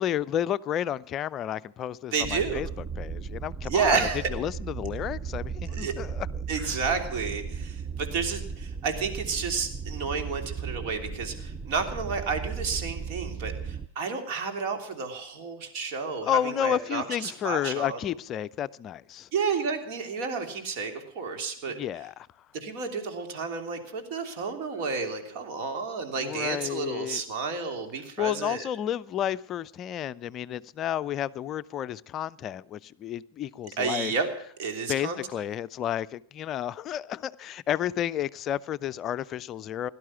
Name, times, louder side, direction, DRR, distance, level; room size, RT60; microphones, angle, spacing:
voice 1, 0.0-2.7 3.0-6.3 6.6-6.8 16.2-19.3 21.7-22.3 26.2-27.2 28.2-34.1 34.9-39.9, left 10 dB, 35° left, 0.5 m, -31 dB
voice 2, 2.1-2.6 3.7-4.3 5.7-5.9 6.5-18.0 19.3-21.8 22.5-28.7 33.8-34.3 34.6-35.2, right 5 dB, 50° right, 3.1 m, -31 dB
sound 1, 2.2-13.9, right 6 dB, 20° right, 0.6 m, -36 dB
17.0 x 12.0 x 5.9 m
figure-of-eight pair, 95°, 0 cm